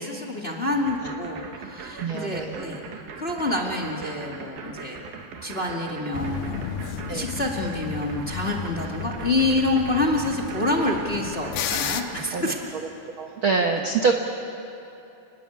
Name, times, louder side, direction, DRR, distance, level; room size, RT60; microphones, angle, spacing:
voice 1, 0.0-2.8 3.2-5.0 5.4-6.8 7.1-12.6, left 2 dB, 20° left, 0 dB, 1.7 m, -27 dB
sound 1, 0.7-12.6, right 6 dB, 80° right, 3.6 m, -40 dB
voice 2, 1.9-2.6 7.1-7.3 12.3-12.5 13.2-14.1, right 5 dB, 65° right, 3 dB, 1.3 m, -25 dB
sound 2, 6.1-12.0, left 7 dB, 85° left, 3.0 m, -33 dB
29.5 x 20.5 x 8.8 m, 2.8 s
omnidirectional pair, 4.1 m